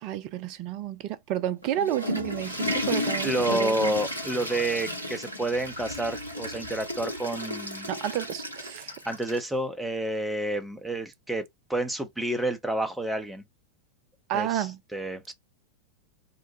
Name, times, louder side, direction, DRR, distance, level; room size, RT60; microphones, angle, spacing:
voice 1, 0.0-3.9 7.9-9.0 14.3-14.8, right 11 dB, 40° right, 0.4 m, -31 dB
Water / Toilet flush, 1.6-9.5, left 1 dB, 90° left, 0.9 m, -33 dB
voice 2, 3.2-7.9 9.1-11.4 11.7-13.4 14.3-14.7 14.9-15.3, right 1 dB, 5° right, 0.7 m, -29 dB
2.9 x 2.1 x 2.8 m
figure-of-eight pair, 90°, 0 cm